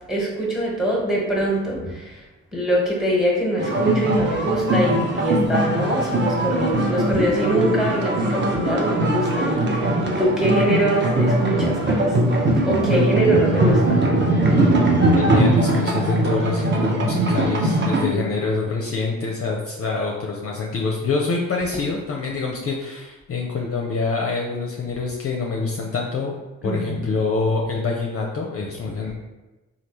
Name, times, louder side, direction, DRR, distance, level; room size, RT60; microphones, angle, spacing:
voice 1, 0.1-2.2 2.5-12.2 12.6-14.1 18.1-18.2 26.6-27.0, right 1 dB, ahead, -3 dB, 1.3 m, -23 dB
sound 1, 3.6-18.0, right 1 dB, 30° right, 0.7 m, -20 dB
voice 2, 15.1-26.4 26.6-29.1, left 4 dB, 40° left, -1 dB, 0.5 m, -25 dB
3.2 x 2.4 x 3.0 m, 1.1 s
supercardioid pair, 50°, 35 cm